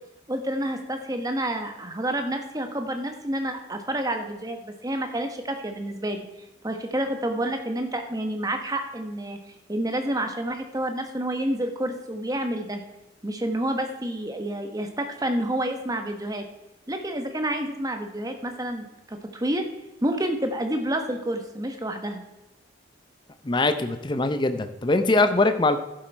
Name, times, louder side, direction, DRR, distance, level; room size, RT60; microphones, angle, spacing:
voice 1, 0.3-6.3 6.6-12.8 13.2-16.4 16.9-19.7 20.0-22.2, right 1 dB, 20° right, 5 dB, 1.1 m, -29 dB
voice 2, 23.4-25.8, left 2 dB, 25° left, 9 dB, 0.6 m, -22 dB
11.5 x 7.7 x 4.5 m, 1.0 s
head